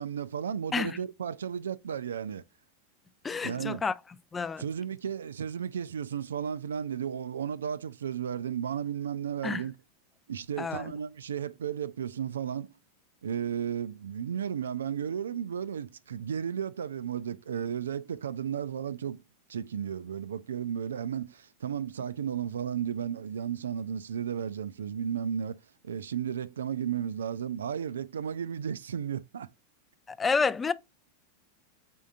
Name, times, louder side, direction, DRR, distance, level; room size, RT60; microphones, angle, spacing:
voice 1, 0.0-2.4 3.4-3.8 4.6-9.8 10.3-12.7 13.2-19.2 19.5-29.5, right 8 dB, 80° right, 0.3 m, -34 dB
voice 2, 3.2-3.9 4.3-4.6 9.4-9.6 10.6-10.9 30.1-30.7, left 4 dB, 20° left, 0.4 m, -29 dB
4.3 x 3.7 x 2.4 m
hypercardioid pair, 95°, 0 cm